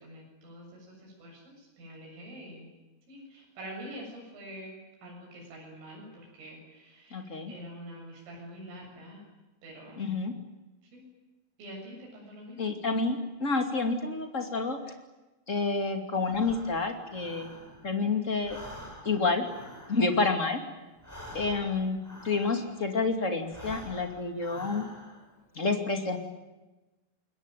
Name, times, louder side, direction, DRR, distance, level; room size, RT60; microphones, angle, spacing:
voice 1, 0.0-2.7 3.1-4.8 5.0-9.2 9.6-10.1 10.9-11.0 11.6-12.8, equal, 85° right, -2 dB, 10.0 m, -46 dB
voice 2, 7.1-7.5 10.0-10.3 12.6-14.8 15.5-17.5 17.8-18.6 19.0-19.5 19.9-20.6 21.3-24.8 25.5-26.2, left 3 dB, 25° left, 5 dB, 1.6 m, -29 dB
Breathing, 16.3-18.0 18.3-22.9 23.4-25.3, equal, 5° left, 7.0 m, -47 dB
28.0 x 22.0 x 9.3 m, 1.1 s
omnidirectional pair, 5.6 m